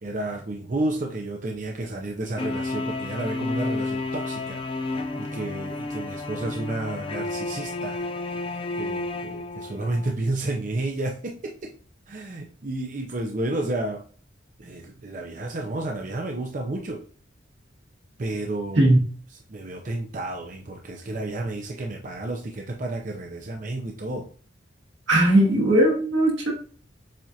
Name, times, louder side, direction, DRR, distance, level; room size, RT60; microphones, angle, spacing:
voice 1, 0.0-11.7 12.1-14.0 14.6-17.0 18.2-18.9 19.5-24.3, right 2 dB, 45° right, 0.6 m, -31 dB
sound 1, 2.4-10.1, left 2 dB, 30° left, 0.4 m, -31 dB
voice 2, 25.1-26.5, right 1 dB, 85° right, 1.5 m, -18 dB
7.5 x 2.5 x 2.8 m
head